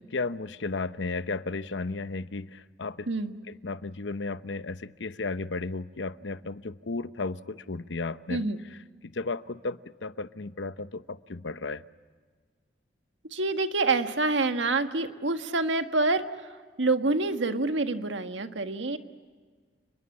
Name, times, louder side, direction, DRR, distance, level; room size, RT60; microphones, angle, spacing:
voice 1, 0.1-3.1 3.5-8.4 8.7-8.8 9.0-11.8, left 3 dB, 80° left, 14 dB, 0.9 m, -34 dB
voice 2, 13.3-16.5 16.8-19.0, right 3 dB, 85° right, 8 dB, 1.6 m, -27 dB
30.0 x 21.0 x 8.6 m, 1.5 s
head